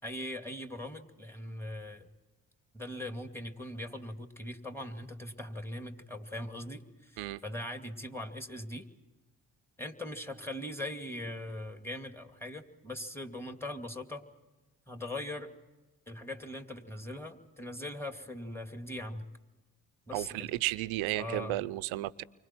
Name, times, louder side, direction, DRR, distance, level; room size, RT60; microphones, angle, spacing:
voice 1, 0.0-2.1 2.7-8.8 9.8-14.3 14.9-15.5 16.1-19.3 20.1-20.5 21.2-21.5, left 1 dB, 5° left, 2.5 m, -40 dB
voice 2, 20.1-22.2, right 17 dB, 80° right, 0.7 m, -33 dB
29.0 x 25.0 x 4.6 m
hypercardioid pair, 40°, 47 cm